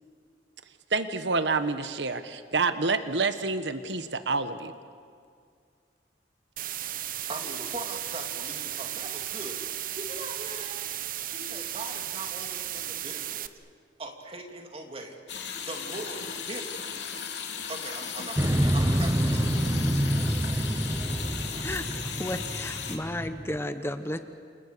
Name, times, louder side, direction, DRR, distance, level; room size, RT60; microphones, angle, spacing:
voice 1, 0.9-4.7, right 4 dB, 90° right, 10 dB, 1.2 m, -28 dB
sound 1, 6.6-13.5, right 12 dB, 50° right, 0.9 m, -35 dB
voice 2, 7.3-9.6 9.9-10.8 11.2-13.5 14.0-15.2 15.7-16.9 17.7-19.6, right 2 dB, 35° right, 3 dB, 3.1 m, -40 dB
sound 2, 15.3-23.0, left 7 dB, 75° left, 3.1 m, -36 dB
Motorcycle, 18.4-23.6, right 1 dB, 15° right, 0.9 m, -27 dB
voice 3, 22.2-24.2, left 1 dB, 15° left, 9 dB, 1.0 m, -33 dB
29.0 x 28.0 x 6.8 m, 2.2 s
head